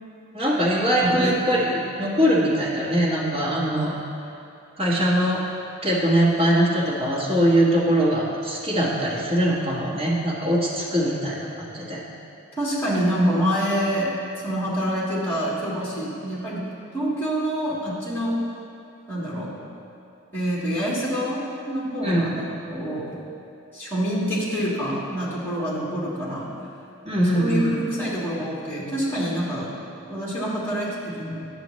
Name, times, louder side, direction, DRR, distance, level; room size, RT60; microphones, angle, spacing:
voice 1, 0.3-3.9 4.8-5.4 5.8-12.0 22.0-22.3 27.0-27.7, equal, 25° right, -6 dB, 1.3 m, -22 dB
voice 2, 1.0-1.3 12.6-14.1 14.4-16.6 16.9-18.4 19.1-19.5 20.3-23.2 23.7-26.5 27.2-29.7 30.1-31.4, equal, 10° left, -7 dB, 1.6 m, -26 dB
9.9 x 6.9 x 3.1 m, 2.6 s
head